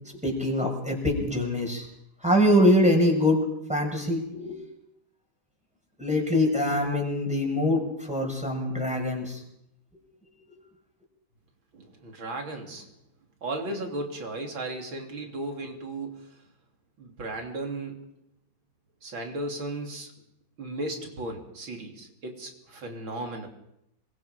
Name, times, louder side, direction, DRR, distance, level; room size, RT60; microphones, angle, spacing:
voice 1, 0.2-1.8 2.2-3.4 3.7-4.6 6.0-7.8 8.1-9.4, left 1 dB, 5° right, 1 dB, 6.1 m, -23 dB
voice 2, 11.7-12.9 13.4-16.4 17.0-18.1 19.0-20.1 20.6-23.5, right 2 dB, 85° right, 2 dB, 4.0 m, -35 dB
26.5 x 23.0 x 5.2 m, 0.78 s
omnidirectional pair, 2.1 m